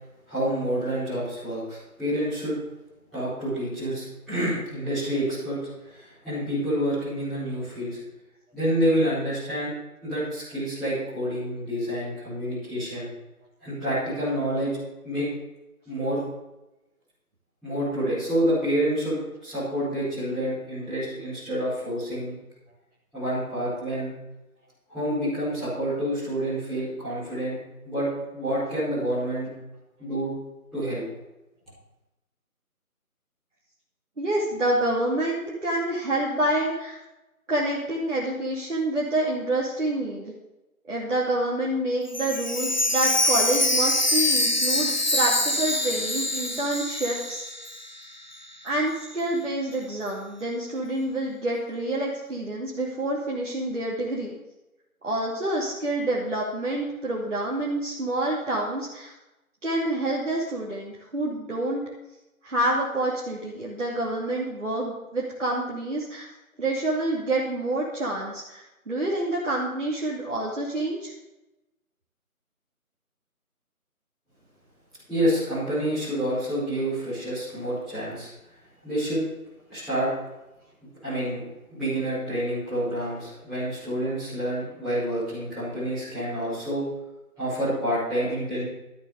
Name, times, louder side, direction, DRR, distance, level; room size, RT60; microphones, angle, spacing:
voice 1, 0.3-2.5 3.1-8.0 8.5-9.7 10.0-13.1 13.6-14.8 15.0-15.3 15.9-16.2 17.6-22.3 23.1-24.1 24.9-27.6 27.8-28.1 28.3-29.5 30.0-30.3 30.7-31.0 75.1-78.3 78.8-79.2 79.7-80.1 81.0-81.4 81.7-86.8 87.4-88.6, right 1 dB, ahead, -21 dB, 5.3 m, -28 dB
voice 2, 34.2-37.0 37.5-40.3 40.9-47.4 48.6-54.3 55.0-59.1 59.6-61.8 62.4-66.3 66.6-71.1, right 1 dB, 55° right, -5 dB, 2.7 m, -27 dB
Chime, 42.1-48.0 48.3-48.4 49.0-49.1, left 1 dB, 30° left, 0.9 m, -25 dB
12.5 x 8.6 x 6.9 m, 0.95 s
figure-of-eight pair, 160°, 44 cm